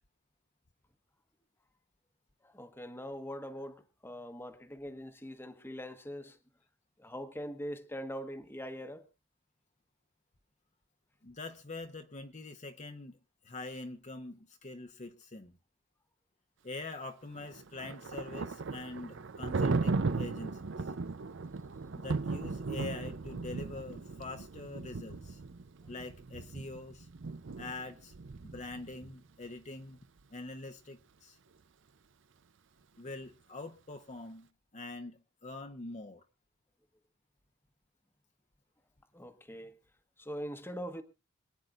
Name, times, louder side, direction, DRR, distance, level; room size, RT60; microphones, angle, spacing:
voice 1, 2.4-6.4 7.0-9.0 39.1-39.8 40.2-41.0, equal, 10° left, 1.2 m, -42 dB
voice 2, 11.2-13.2 13.4-15.6 16.6-20.9 22.0-25.4 25.9-27.1 27.6-28.1 28.5-30.0 30.3-31.4 33.0-34.5 34.7-36.2, left 2 dB, 35° left, 0.9 m, -44 dB
Thunder, 17.4-29.1, right 3 dB, 65° right, 0.6 m, -37 dB
26.5 x 9.5 x 2.5 m
head